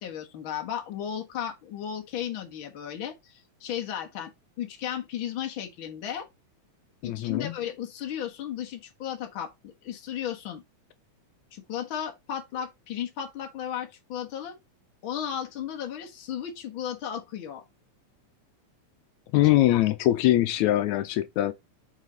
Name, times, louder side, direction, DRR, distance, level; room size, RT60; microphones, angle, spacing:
voice 1, 0.0-4.3 4.6-6.3 7.0-10.6 11.5-14.5 15.0-17.6 19.3-19.4 19.7-19.9, left 9 dB, 50° left, 2.0 m, -35 dB
voice 2, 7.0-7.5 19.3-21.5, left 14 dB, 85° left, 2.0 m, -22 dB
8.2 x 4.1 x 4.0 m
omnidirectional pair, 3.3 m